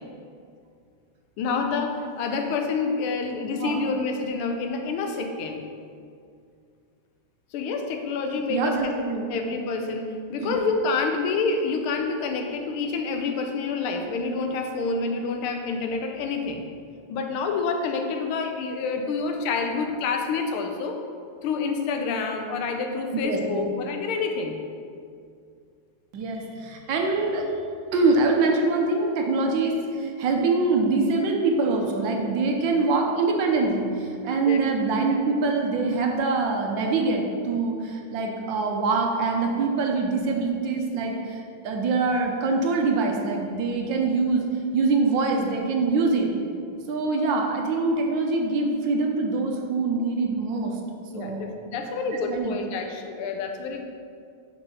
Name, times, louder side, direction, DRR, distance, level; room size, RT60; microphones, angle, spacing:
voice 1, 1.4-5.6 7.5-9.0 9.3-16.6 17.1-21.0 21.4-24.6 34.3-34.6 51.1-53.8, left 4 dB, 85° left, 4 dB, 1.6 m, -28 dB
voice 2, 8.5-9.3 10.4-10.6 23.2-23.7 26.1-27.5 27.9-44.5 44.7-46.3 46.9-50.7 51.1-51.5 52.1-52.6, right 3 dB, 70° right, 1 dB, 1.4 m, -24 dB
6.1 x 4.5 x 5.4 m, 2.3 s
omnidirectional pair, 2.3 m